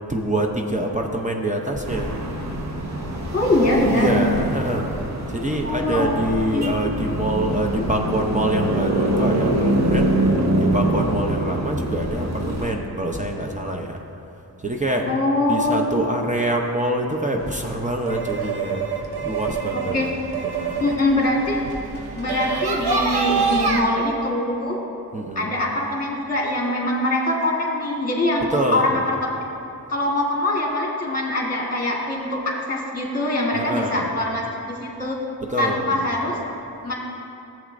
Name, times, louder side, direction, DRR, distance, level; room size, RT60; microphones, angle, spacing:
voice 1, 0.1-2.2 3.9-5.0 5.3-10.1 10.6-14.0 14.6-15.1 15.5-18.9 19.2-20.9 25.1-25.5 28.5-29.1 33.5-34.1 35.4-36.1, right 1 dB, 20° right, 1 dB, 0.7 m, -25 dB
sound 1, 1.9-12.7, right 1 dB, 45° right, 1.2 m, -24 dB
voice 2, 3.3-4.1 5.6-6.1 6.5-6.7 15.1-15.8 19.7-20.1 20.8-21.6 22.1-24.8 25.3-28.5 28.7-29.2 29.9-35.2 35.6-36.4 36.8-36.9, left 1 dB, 20° left, -2 dB, 1.5 m, -23 dB
sound 2, 17.4-23.8, right 5 dB, 90° right, 0.8 m, -26 dB
14.5 x 7.4 x 2.6 m, 2.8 s
wide cardioid pair, 85°, 38 cm